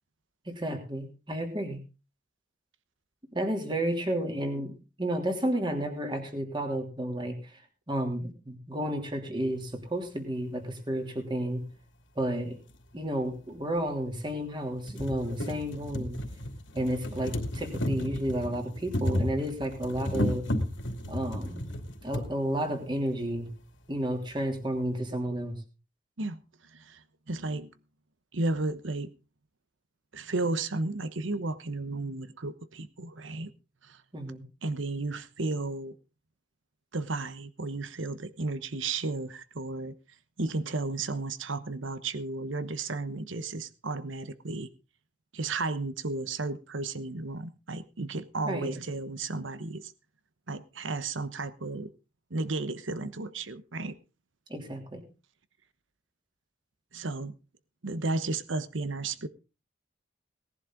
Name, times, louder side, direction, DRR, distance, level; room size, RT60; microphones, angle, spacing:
voice 1, 0.5-1.8 3.3-7.6 7.9-11.6 12.2-12.6 12.9-16.2 16.7-20.4 21.1-21.7 22.0-23.5 23.9-25.6 34.1-34.4 48.4-48.8 54.5-55.0, right 1 dB, 25° right, 3.0 m, -32 dB
sound 1, 12.7-12.8 13.8-13.9 14.3-14.4 14.7-22.3 23.2-23.3 23.5-23.6, left 1 dB, 80° left, 2.6 m, -33 dB
voice 2, 26.7-27.7 28.3-29.1 30.1-33.5 33.8-34.0 34.6-36.0 36.9-39.9 40.4-44.7 45.3-49.9 50.5-51.9 52.3-54.0 56.9-57.3 57.8-59.3, right 3 dB, 85° right, 1.1 m, -33 dB
18.5 x 11.0 x 3.8 m
head